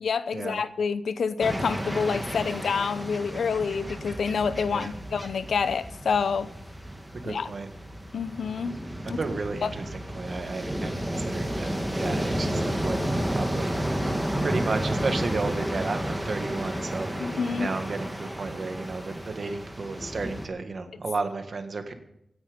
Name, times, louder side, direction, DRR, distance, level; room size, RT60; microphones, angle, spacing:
voice 1, 0.0-6.5 7.3-7.5 8.1-8.8 9.1-9.2 9.6-9.7 17.2-17.7, left 5 dB, 75° left, 0.6 m, -27 dB
sound 1, 1.4-20.5, equal, 5° right, 1.6 m, -32 dB
voice 2, 7.2-7.7 9.2-13.7 14.4-17.1 17.5-21.9, right 3 dB, 45° right, 1.6 m, -33 dB
16.0 x 9.9 x 5.2 m
wide cardioid pair, 140°, 0 cm